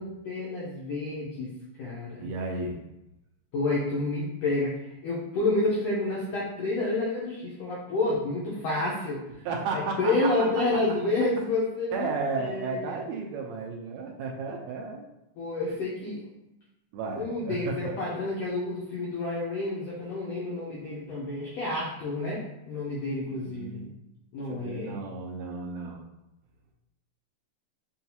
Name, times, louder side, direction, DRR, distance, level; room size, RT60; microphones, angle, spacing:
voice 1, 0.0-2.3 3.5-9.2 9.7-12.1 12.4-13.0 15.4-16.3 17.2-23.9 24.3-24.9, left 2 dB, 80° left, -6 dB, 1.5 m, -29 dB
voice 2, 2.2-2.8 9.4-10.5 11.9-15.1 15.7-15.8 16.9-18.0 23.2-23.8 24.4-26.0, right 4 dB, 85° right, 0 dB, 1.5 m, -33 dB
5.7 x 2.3 x 2.7 m, 0.91 s
omnidirectional pair, 3.7 m